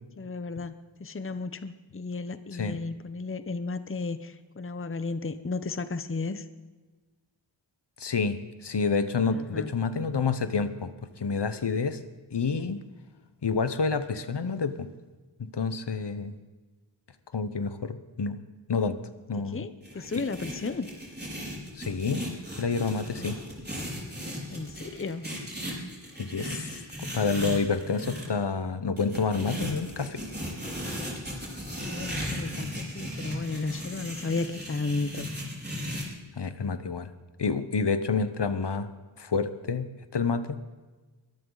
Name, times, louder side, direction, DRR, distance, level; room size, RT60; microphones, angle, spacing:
voice 1, 0.2-6.5 9.3-9.7 19.5-20.9 23.2-23.3 24.5-25.3 31.8-35.3, left 3 dB, 30° left, 12 dB, 0.8 m, -34 dB
voice 2, 8.0-8.4 8.6-10.9 11.2-12.0 12.3-12.8 13.4-14.9 15.5-16.3 17.3-18.4 18.7-19.0 19.3-19.7 21.7-22.2 22.6-23.4 26.2-26.8 27.1-30.2 36.4-37.1 37.4-38.9 39.2-40.6, left 4 dB, 60° left, 11 dB, 1.1 m, -28 dB
sound 1, 19.8-28.3 29.0-36.0, equal, 20° right, 5.0 m, -36 dB
22.5 x 13.0 x 4.0 m, 1.3 s
wide cardioid pair, 65°, 46 cm